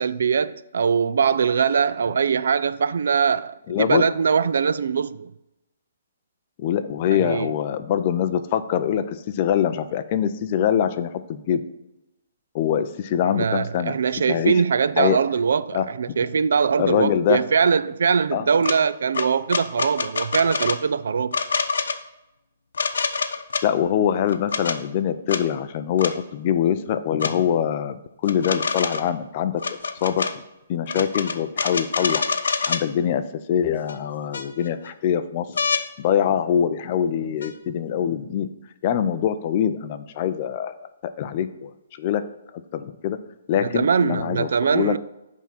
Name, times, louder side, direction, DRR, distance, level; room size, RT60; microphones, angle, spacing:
voice 1, 0.0-5.3 7.2-7.5 13.2-21.4 43.6-45.0, right 6 dB, 65° right, 0.3 m, -22 dB
voice 2, 3.7-4.0 6.6-11.6 12.5-13.9 14.3-14.6 15.0-15.2 15.7-16.2 16.8-17.4 18.3-18.5 23.6-28.0 28.2-29.6 30.0-30.3 30.7-32.3 32.7-33.2 33.5-35.5 36.0-38.5 38.8-40.8 41.0-41.7 42.0-42.2 42.5-43.2 43.5-44.9, left 9 dB, 25° left, 0.4 m, -23 dB
sound 1, 18.6-18.8 19.1-20.8 21.3-22.0 22.7-23.6 24.3-24.8 25.3-25.4 26.0-26.1 27.2-27.3 28.2-29.1 29.6-30.3 30.9-32.8 33.9-34.0 34.3-34.9 35.6-35.8 37.4-37.5, left 5 dB, 85° left, 0.7 m, -26 dB
8.7 x 3.6 x 5.8 m
hypercardioid pair, 175°, 0 cm